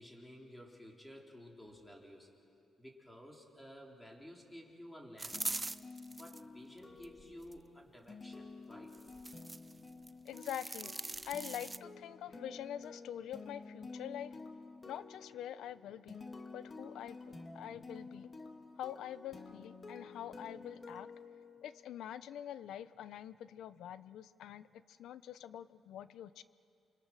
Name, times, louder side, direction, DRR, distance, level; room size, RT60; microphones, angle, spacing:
voice 1, 0.0-2.3 2.8-5.5 6.1-9.0, equal, 5° left, 0 dB, 4.2 m, -53 dB
sound 1, 5.2-6.4 7.0-7.6 8.9-9.7 10.1-11.8, right 2 dB, 20° right, 0.6 m, -42 dB
sound 2, 5.3-22.0, left 3 dB, 30° left, 2.2 m, -51 dB
voice 2, 10.2-11.0 11.2-14.4 14.9-16.3 16.5-18.3 18.8-21.1 21.6-26.4, left 10 dB, 80° left, 15 dB, 0.7 m, -45 dB
28.0 x 25.0 x 6.4 m, 2.5 s
cardioid pair, 90°, 0 cm